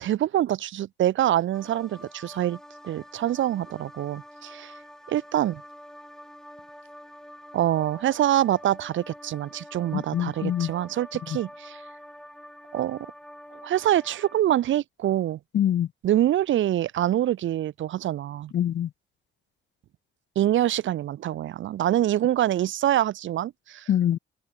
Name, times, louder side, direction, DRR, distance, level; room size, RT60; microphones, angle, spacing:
voice 1, 0.0-2.6 2.8-4.7 5.1-5.6 7.5-11.8 12.7-13.0 13.6-15.4 16.0-18.5 20.4-23.9, right 12 dB, 75° right, 2.2 m, -25 dB
sound 1, 1.5-14.4, equal, 5° left, 5.7 m, -46 dB
voice 2, 9.9-10.7 11.3-11.4 15.5-15.9 18.5-18.9 23.9-24.2, left 10 dB, 60° left, 1.3 m, -24 dB
cardioid pair, 90°, 20 cm